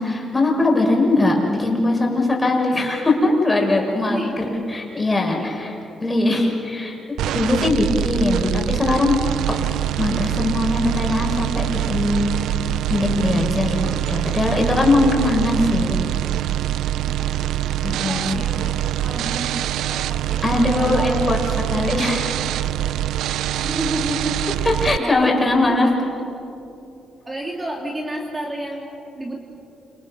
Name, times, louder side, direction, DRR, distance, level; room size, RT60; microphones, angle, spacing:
voice 1, 0.0-5.7 6.0-7.0 7.3-9.2 9.5-9.6 10.0-12.3 12.9-16.0 17.8-18.4 20.4-22.3 24.6-25.9, left 2 dB, 15° left, 0 dB, 6.1 m, -20 dB
voice 2, 4.0-4.5 5.2-5.7 17.0-21.1 23.5-25.8 27.2-29.4, right 1 dB, 20° right, 0 dB, 3.3 m, -31 dB
sound 1, 7.2-25.0, right 13 dB, 85° right, 0.6 m, -24 dB
29.5 x 27.5 x 6.5 m, 2.8 s
cardioid pair, 90°, 0 cm